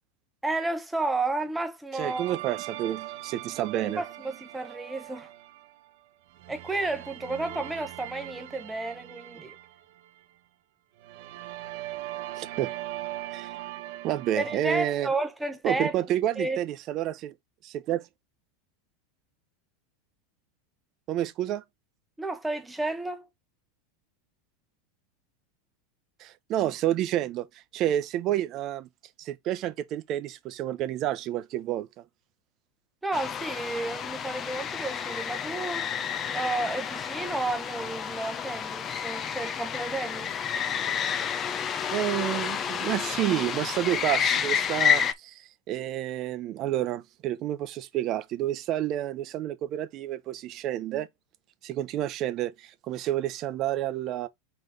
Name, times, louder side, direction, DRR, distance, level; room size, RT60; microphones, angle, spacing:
voice 1, 0.4-2.3 3.8-5.3 6.5-9.6 14.4-15.9 16.4-16.6 22.2-23.3 33.0-35.9 36.3-40.3, right 2 dB, 5° right, 1.0 m, -32 dB
voice 2, 1.9-4.0 12.4-12.7 13.3-13.5 14.0-15.1 15.6-17.3 17.6-18.1 21.1-21.6 26.2-27.5 27.7-28.9 29.2-31.9 41.9-51.1 51.6-54.3, right 12 dB, 40° right, 0.8 m, -29 dB
sound 1, 2.0-5.9 6.3-10.3 11.0-14.6, right 14 dB, 65° right, 1.0 m, -40 dB
sound 2, 33.1-45.1, left 8 dB, 25° left, 0.6 m, -30 dB
4.5 x 4.0 x 5.3 m
supercardioid pair, 145°, 0 cm